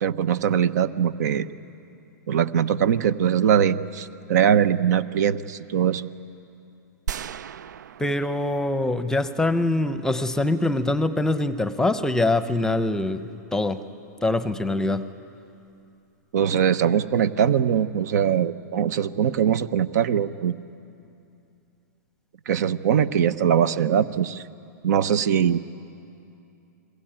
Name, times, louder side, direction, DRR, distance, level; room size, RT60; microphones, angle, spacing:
voice 1, 0.0-1.5 2.3-6.1 16.3-20.6 22.5-24.4 24.8-25.6, right 8 dB, 65° right, 14 dB, 1.0 m, -22 dB
sound 1, 7.1-9.3, right 8 dB, 80° right, 0.6 m, -37 dB
voice 2, 8.0-13.8 14.2-15.1, left 2 dB, 5° left, 12 dB, 0.9 m, -24 dB
29.5 x 22.5 x 9.0 m, 2.6 s
hypercardioid pair, 130°, 10 cm